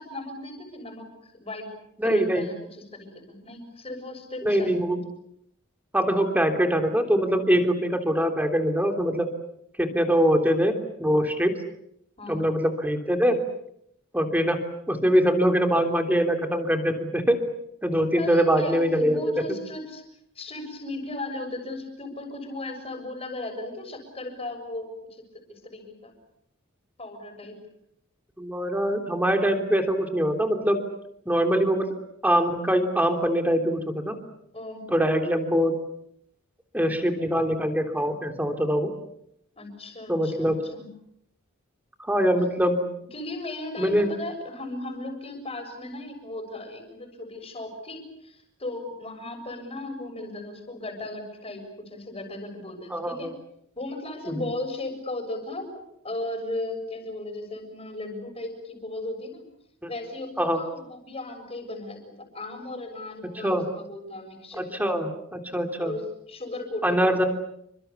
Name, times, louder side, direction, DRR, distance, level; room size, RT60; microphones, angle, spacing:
voice 1, 0.0-1.7 2.0-5.0 12.2-12.5 18.2-20.0 20.4-25.2 25.5-26.1 27.0-27.6 34.5-34.9 39.6-40.9 43.1-53.3 53.8-55.7 56.0-59.4 59.9-65.2 65.8-67.1, left 2 dB, 30° left, 6 dB, 7.1 m, -36 dB
voice 2, 2.0-2.5 4.4-5.0 5.9-9.3 9.8-11.5 12.3-13.4 14.1-14.6 14.9-17.4 17.8-19.2 28.4-30.8 31.3-31.9 32.2-34.2 34.9-35.8 36.7-38.9 40.1-40.6 42.0-42.8 43.8-44.1 52.9-53.3 54.3-54.5 59.8-59.9 60.4-60.6 63.4-63.7 64.6-65.9 66.8-67.2, equal, 10° right, 4 dB, 3.3 m, -23 dB
29.0 x 25.0 x 7.1 m, 0.75 s
head